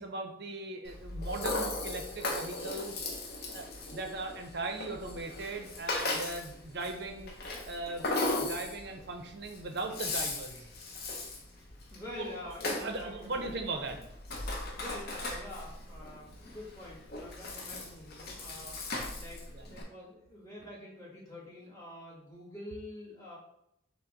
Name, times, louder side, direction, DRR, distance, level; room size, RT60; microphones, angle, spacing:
voice 1, 0.0-3.0 3.5-3.7 3.9-7.3 7.7-8.1 8.4-10.6 12.1-14.0 19.5-19.7, right 2 dB, 55° right, 5 dB, 0.6 m, -39 dB
Rattle (instrument), 0.9-19.8, left 2 dB, 50° left, 0.7 m, -38 dB
voice 2, 11.9-13.9 14.5-23.4, left 1 dB, 15° left, -5 dB, 1.3 m, -47 dB
5.6 x 2.1 x 3.9 m, 0.78 s
head